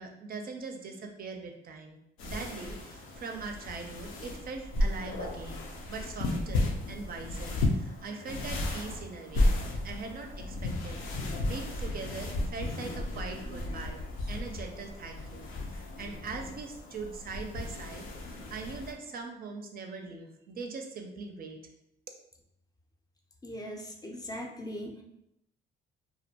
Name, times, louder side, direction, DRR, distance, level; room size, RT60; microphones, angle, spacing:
voice 1, 0.0-9.6 9.8-14.0 14.3-21.6, right 4 dB, 50° right, 3 dB, 0.4 m, -41 dB
sound 1, 2.2-18.9, left 2 dB, 90° left, 0.5 m, -34 dB
voice 2, 23.4-25.0, equal, 20° left, 1 dB, 0.4 m, -40 dB
2.3 x 2.1 x 2.8 m, 0.82 s
cardioid pair, 90°, 20 cm